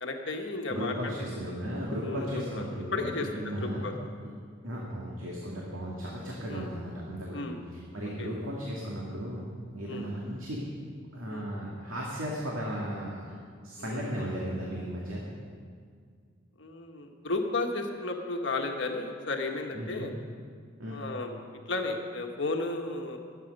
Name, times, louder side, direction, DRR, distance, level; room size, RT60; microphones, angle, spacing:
voice 1, 0.0-1.3 2.0-2.6 2.9-3.3 3.6-3.9 6.5-6.7 7.3-7.6 8.2-8.3 9.9-10.1 11.3-11.4 13.8-14.0 16.6-20.1 20.9-21.3 21.7-23.2, left 2 dB, 60° left, 2 dB, 1.5 m, -33 dB
voice 2, 0.7-3.9 4.2-4.3 4.6-9.5 9.7-10.7 11.1-13.3 13.6-15.2 19.7-20.1 20.8-21.0, equal, 90° right, -4 dB, 2.4 m, -35 dB
22.0 x 9.3 x 5.4 m, 2.1 s
head